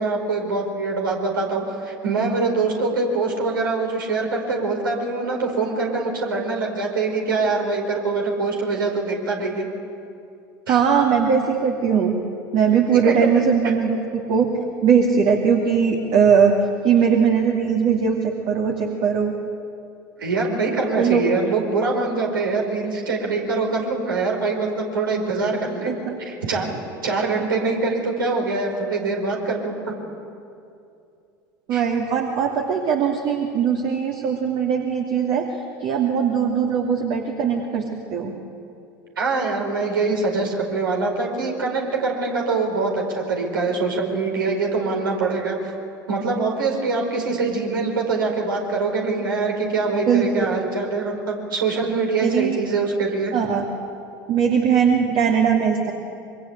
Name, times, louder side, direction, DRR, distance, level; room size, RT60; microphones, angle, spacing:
voice 1, 0.0-9.6 10.7-10.8 13.0-13.1 20.2-25.9 26.2-26.7 27.0-29.9 31.7-31.8 39.2-45.7 46.1-53.3, right 3 dB, 75° right, 0 dB, 4.9 m, -24 dB
voice 2, 10.7-12.2 12.5-14.5 14.8-16.5 16.8-19.3 21.0-21.2 25.8-26.2 31.7-35.5 35.8-38.3 50.1-50.4 52.2-52.6 53.3-53.6 54.3-55.9, right 7 dB, 45° right, 1 dB, 2.8 m, -20 dB
26.5 x 23.5 x 8.3 m, 2.6 s
figure-of-eight pair, 75°, 12 cm